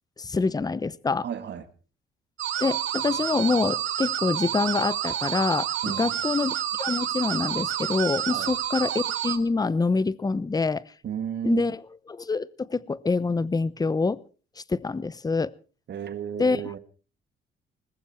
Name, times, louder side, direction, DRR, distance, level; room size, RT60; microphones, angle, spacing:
voice 1, 0.2-1.2 2.6-10.8 11.4-11.8 12.1-14.2 14.7-15.5 16.4-16.6, left 4 dB, 20° left, 0.8 m, -26 dB
voice 2, 1.2-1.7 5.8-6.2 8.3-8.5 11.0-11.6 15.9-16.8, right 8 dB, 60° right, 2.3 m, -33 dB
sound 1, 2.4-9.4, right 11 dB, 75° right, 2.1 m, -29 dB
20.0 x 14.5 x 4.5 m
cardioid pair, 90°, 20 cm